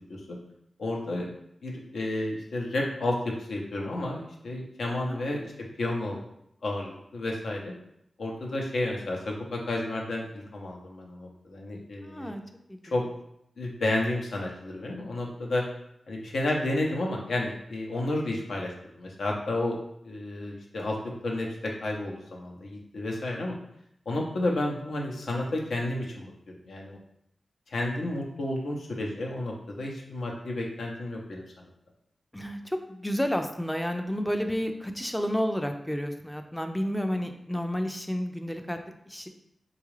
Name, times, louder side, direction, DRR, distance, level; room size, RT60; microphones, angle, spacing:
voice 1, 0.8-1.3 1.6-6.2 6.6-7.7 8.2-12.3 12.9-13.0 13.6-15.6 16.1-23.5 24.1-27.0 27.7-31.7, left 2 dB, 85° left, -1 dB, 0.7 m, -31 dB
voice 2, 12.0-12.4 12.7-12.8 32.3-38.8 39.1-39.3, equal, 5° left, 6 dB, 0.3 m, -31 dB
3.8 x 2.3 x 3.1 m, 0.76 s
wide cardioid pair, 85°, 0 cm